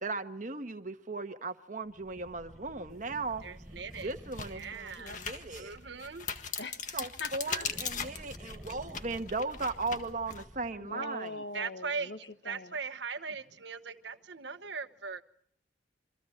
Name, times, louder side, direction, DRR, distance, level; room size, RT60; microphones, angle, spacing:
voice 1, 0.0-3.4 4.0-5.8 6.9-11.4, right 3 dB, 45° right, 1.3 m, -37 dB
sound 1, 1.9-6.3 7.3-10.9, equal, ahead, 7.6 m, -51 dB
sound 2, 3.2-3.3 3.8-10.4, left 6 dB, 45° left, 1.8 m, -40 dB
voice 2, 3.4-4.1 4.5-5.2 5.6-6.3 11.5-12.1 12.4-15.2, right 5 dB, 80° right, 1.2 m, -39 dB
voice 3, 4.6-5.2 6.6-6.8 7.2-8.1 10.8-12.8, left 2 dB, 75° left, 1.6 m, -43 dB
27.5 x 24.5 x 4.5 m
head